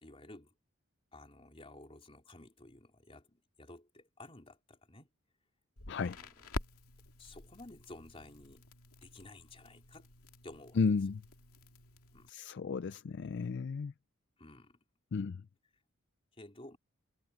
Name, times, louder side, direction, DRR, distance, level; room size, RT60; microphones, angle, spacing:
voice 1, 0.0-0.5 1.1-5.1 5.9-6.3 7.2-8.6 9.0-10.1 10.4-10.8 12.1-12.3 14.4-14.8 16.3-16.8, left 2 dB, 25° left, 3.7 m, -53 dB
Crackle, 5.8-12.3, left 2 dB, 85° left, 2.5 m, -48 dB
voice 2, 10.8-11.2 12.3-13.9 15.1-15.4, left 5 dB, 55° left, 0.4 m, -33 dB
head